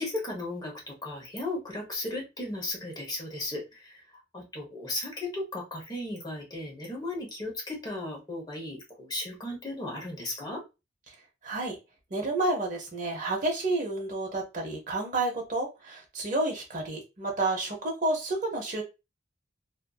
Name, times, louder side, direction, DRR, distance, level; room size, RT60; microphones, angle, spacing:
voice 1, 0.0-4.0 4.3-10.6, left 2 dB, 20° left, -1 dB, 0.8 m, -35 dB
voice 2, 11.4-11.8 12.1-18.8, right 2 dB, 40° right, 0 dB, 0.7 m, -30 dB
2.5 x 2.5 x 2.3 m, 0.26 s
head